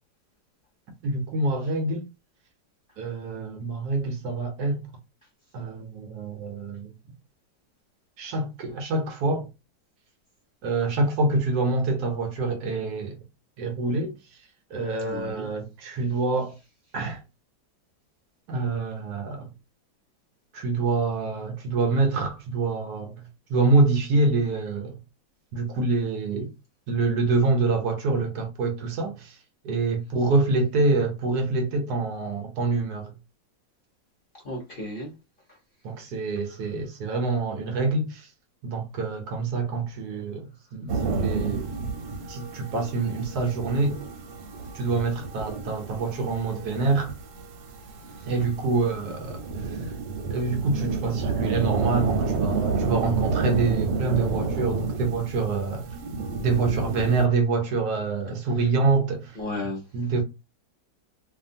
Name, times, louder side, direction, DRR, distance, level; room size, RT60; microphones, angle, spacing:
voice 1, 1.0-2.1 3.0-4.8 5.5-6.9 8.2-9.5 10.6-13.2 13.6-14.4 14.7-16.6 16.9-17.2 18.5-19.5 20.5-23.2 23.5-25.0 25.5-26.5 26.9-29.4 29.6-33.1 35.8-38.3 38.6-41.7 42.3-44.0 44.7-47.1 48.3-49.9 50.3-55.9 56.4-59.4 59.9-60.2, right 3 dB, 70° right, 1.1 m, -26 dB
voice 2, 15.0-15.5 34.4-35.1 48.2-48.3 59.4-59.8, left 1 dB, 40° left, 0.9 m, -34 dB
Denver Liberty Bell, 40.9-57.3, right 4 dB, 85° right, 1.3 m, -30 dB
2.8 x 2.5 x 2.5 m
omnidirectional pair, 1.9 m